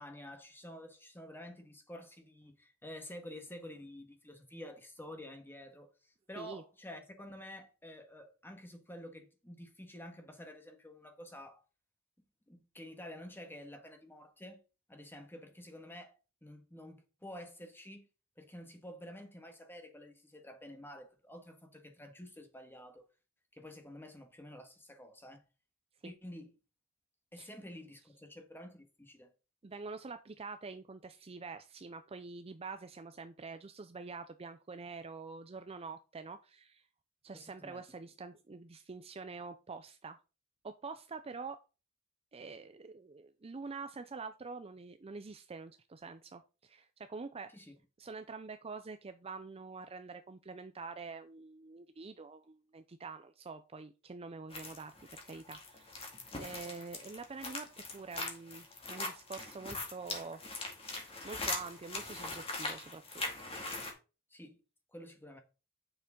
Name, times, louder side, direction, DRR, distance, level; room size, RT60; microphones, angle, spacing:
voice 1, 0.0-11.6 12.5-14.6 14.9-16.1 16.4-18.1 18.4-23.1 23.5-25.4 26.0-26.5 27.3-29.3 37.3-38.0 47.5-47.7 64.3-64.6 64.9-65.4, left 1 dB, 10° left, 1.7 m, -50 dB
voice 2, 29.6-36.8 37.2-40.2 40.6-41.6 42.3-47.7 48.0-55.9 56.4-60.4 61.0-63.5, right 4 dB, 25° right, 0.5 m, -46 dB
sound 1, 54.5-63.9, left 2 dB, 25° left, 2.3 m, -41 dB
8.9 x 6.8 x 3.8 m
head